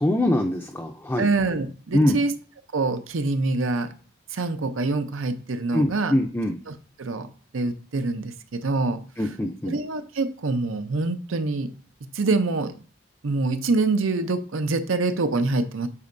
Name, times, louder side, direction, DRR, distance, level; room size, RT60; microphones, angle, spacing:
voice 1, 0.0-1.3 1.9-2.2 5.7-6.5 9.2-9.8, left 1 dB, 10° left, 3 dB, 0.4 m, -23 dB
voice 2, 1.2-2.3 2.7-3.9 4.3-6.1 6.7-7.3 7.5-9.0 9.7-11.7 12.1-12.7 13.2-15.9, right 3 dB, 90° right, 9 dB, 0.7 m, -25 dB
8.4 x 4.4 x 2.6 m, 0.39 s
head